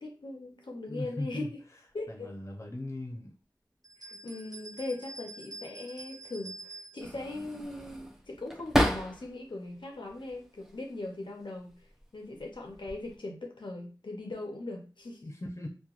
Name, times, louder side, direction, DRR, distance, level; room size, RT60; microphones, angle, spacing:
voice 1, 0.0-1.5 1.9-2.3 4.0-11.7 12.1-15.3, left 2 dB, 85° left, 2 dB, 0.5 m, -40 dB
voice 2, 0.9-1.5 2.1-3.3 15.2-15.7, left 2 dB, 35° left, 0 dB, 0.6 m, -38 dB
sound 1, 3.8-7.2, right 2 dB, 50° right, 0.6 m, -46 dB
sound 2, 7.0-9.5 9.9-10.8 11.7-12.0 12.4-13.2, equal, 5° right, 0.5 m, -32 dB
2.9 x 2.2 x 2.4 m, 0.35 s
wide cardioid pair, 45°, 8 cm